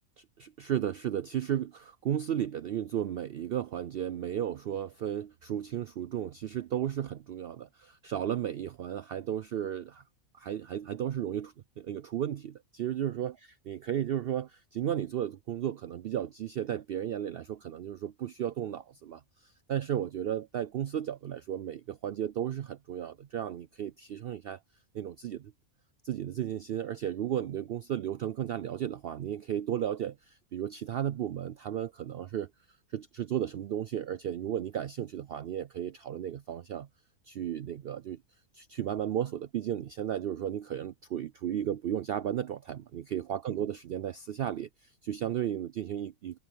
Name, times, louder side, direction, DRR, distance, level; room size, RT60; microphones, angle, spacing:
voice 1, 0.2-10.0 10.3-24.6 24.9-25.5 26.0-32.5 32.9-36.9 37.3-38.2 38.5-46.4, right 10 dB, 65° right, 0.6 m, -34 dB
omnidirectional pair, 1.4 m